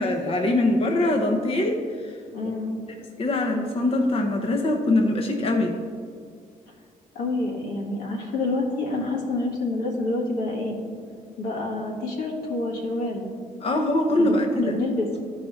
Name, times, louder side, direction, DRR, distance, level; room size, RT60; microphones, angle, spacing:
voice 1, 0.0-2.2 2.4-2.5 3.2-5.8 13.6-14.8, left 1 dB, 40° left, 2 dB, 0.8 m, -23 dB
voice 2, 2.3-2.7 7.1-10.7 11.4-13.2 14.2-15.1, left 2 dB, 85° left, -3 dB, 1.6 m, -28 dB
12.0 x 4.8 x 3.2 m, 2.1 s
supercardioid pair, 70°, 15 cm